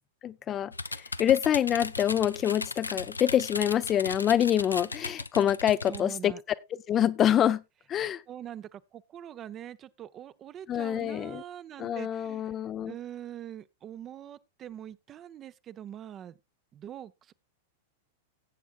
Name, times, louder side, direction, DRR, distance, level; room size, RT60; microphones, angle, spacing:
voice 1, 0.2-6.3 6.9-7.6 7.9-8.2 10.7-11.4 11.8-12.9, left 10 dB, 30° left, 0.5 m, -26 dB
sound 1, 0.7-6.0, left 3 dB, 80° left, 0.5 m, -37 dB
voice 2, 5.9-6.4 8.3-12.5 12.9-16.4 16.7-17.3, right 10 dB, 30° right, 0.6 m, -43 dB
18.5 x 8.2 x 2.4 m
figure-of-eight pair, 95°, 0 cm